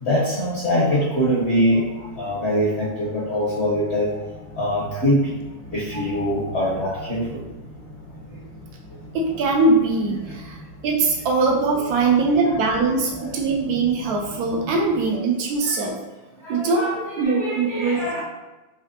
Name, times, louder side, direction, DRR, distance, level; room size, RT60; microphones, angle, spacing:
voice 1, 0.0-1.9 2.2-4.1 4.6-5.3 5.7-7.4 12.3-12.5 13.2-13.3 15.6-15.8 16.4-18.2, equal, 55° left, -6 dB, 0.7 m, -23 dB
sound 1, 1.2-15.0, equal, 70° left, 1.2 m, -42 dB
voice 2, 9.1-16.0 16.5-18.2, right 3 dB, 80° right, 0 dB, 0.8 m, -22 dB
4.0 x 2.8 x 2.8 m, 1.1 s
omnidirectional pair, 2.2 m